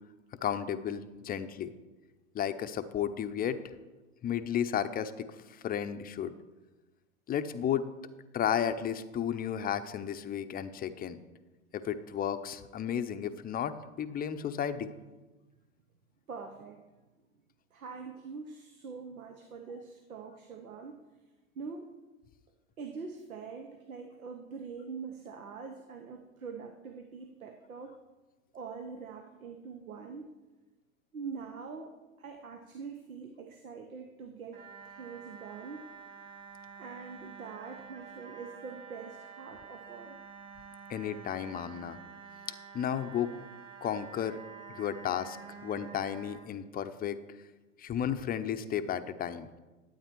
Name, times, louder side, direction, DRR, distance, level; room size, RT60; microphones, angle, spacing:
voice 1, 0.4-1.7 2.3-3.6 4.2-6.3 7.3-7.9 8.3-11.2 11.7-14.9 40.9-42.0 42.7-43.3 43.8-44.4 44.7-45.4 45.6-47.2 47.8-49.5, left 9 dB, 20° left, 9 dB, 0.6 m, -33 dB
voice 2, 16.3-16.8 17.7-21.0 21.5-21.9 22.8-28.0 28.5-30.3 31.1-35.9 36.8-40.2, right 5 dB, 90° right, 6 dB, 1.0 m, -44 dB
sound 1, 34.5-46.4, right 6 dB, 30° right, 2.6 m, -49 dB
12.0 x 8.8 x 4.5 m, 1.2 s
hypercardioid pair, 95°, 41 cm